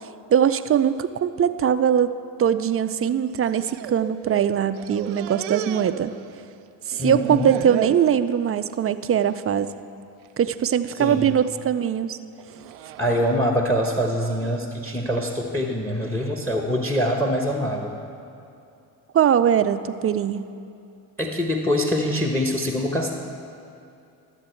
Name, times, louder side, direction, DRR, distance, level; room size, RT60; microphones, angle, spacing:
voice 1, 0.3-2.1 2.4-6.1 6.9-9.7 10.4-12.2 19.1-20.4, right 9 dB, 30° right, 12 dB, 0.4 m, -21 dB
sound 1, 3.4-4.5 4.7-6.6 6.9-8.1 8.5-8.9 9.2-9.4 10.3-10.7 11.2-11.6 12.4-14.6, right 11 dB, 80° right, 0.6 m, -34 dB
voice 2, 7.0-7.5 10.9-11.3 13.0-17.9 21.2-23.1, equal, 5° left, 3 dB, 1.0 m, -24 dB
12.5 x 7.4 x 4.4 m, 2.6 s
hypercardioid pair, 55°, 49 cm